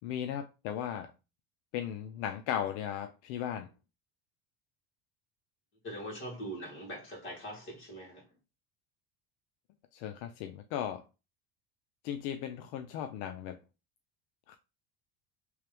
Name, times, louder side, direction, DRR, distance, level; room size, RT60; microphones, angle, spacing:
voice 1, 0.0-1.1 1.7-3.7 9.9-11.0 12.0-13.6 14.5-14.6, left 10 dB, 80° left, 0.5 m, -36 dB
voice 2, 5.8-8.3, equal, 40° left, 2.2 m, -42 dB
3.3 x 3.1 x 3.3 m
cardioid pair, 120°, 33 cm